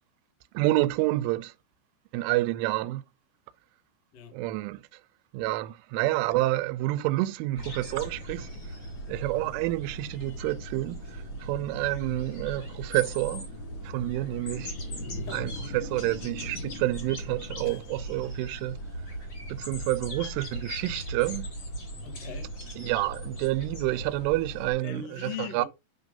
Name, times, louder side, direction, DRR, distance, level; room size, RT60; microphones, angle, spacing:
voice 1, 0.5-1.5 2.1-3.0 4.3-4.8 5.3-8.5 9.1-13.5 13.8-14.7 15.3-18.8 19.5-21.5 22.8-25.7, right 17 dB, 85° right, 3.1 m, -29 dB
sound 1, 7.5-24.7, equal, 40° left, 1.4 m, -38 dB
voice 2, 22.0-22.8 24.8-25.6, left 8 dB, 75° left, 1.4 m, -40 dB
8.9 x 3.7 x 5.2 m
omnidirectional pair, 5.6 m